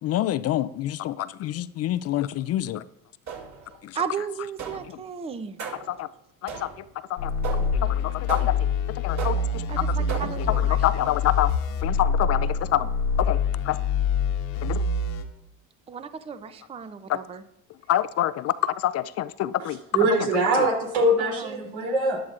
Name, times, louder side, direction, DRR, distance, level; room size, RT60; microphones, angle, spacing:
voice 1, 0.0-2.8 3.8-4.0 5.9-6.1 6.4-7.3 7.8-8.6 8.9-10.0 10.2-11.5 11.8-12.9 13.2-13.8 14.6-14.8 17.1-17.2 17.9-19.8 20.2-20.7, left 13 dB, 40° left, 16 dB, 0.4 m, -27 dB
sound 1, 3.3-3.8 4.6-5.0 5.6-6.0 6.5-6.9 7.4-7.8 8.3-8.8 9.2-9.6 10.1-10.5, right 6 dB, 40° right, 2.6 m, -36 dB
voice 2, 3.9-5.6 9.7-11.1 15.9-17.4 21.2-21.7, right 7 dB, 15° right, 12 dB, 0.5 m, -35 dB
sound 2, 7.2-15.2, left 5 dB, 80° left, 1.5 m, -25 dB
voice 3, 19.9-22.2, right 1 dB, 90° right, -1 dB, 3.3 m, -22 dB
13.5 x 11.0 x 2.5 m, 0.84 s
supercardioid pair, 90°, 42 cm